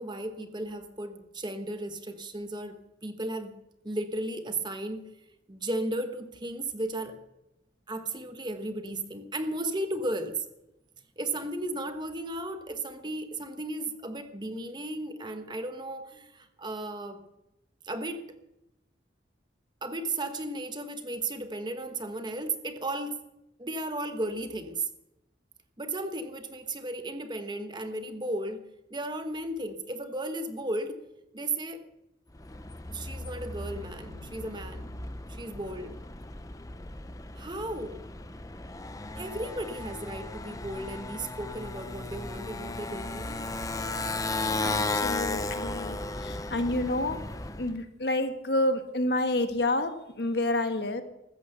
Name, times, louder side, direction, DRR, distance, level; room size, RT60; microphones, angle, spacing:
voice 1, 0.0-3.6 3.8-5.1 5.5-7.2 7.9-10.5 11.2-17.2 17.8-18.4 19.8-23.2 23.6-24.9 25.8-31.0 31.3-31.8 32.9-34.9 35.3-36.0 37.4-38.0 39.2-43.4, right 2 dB, 25° right, 8 dB, 1.1 m, -35 dB
Motorcycle, 32.3-47.7, left 2 dB, 20° left, 0.7 m, -35 dB
voice 2, 44.6-46.0 46.2-47.2 47.6-51.0, left 1 dB, 60° left, 8 dB, 1.4 m, -29 dB
14.5 x 13.5 x 6.8 m, 0.89 s
head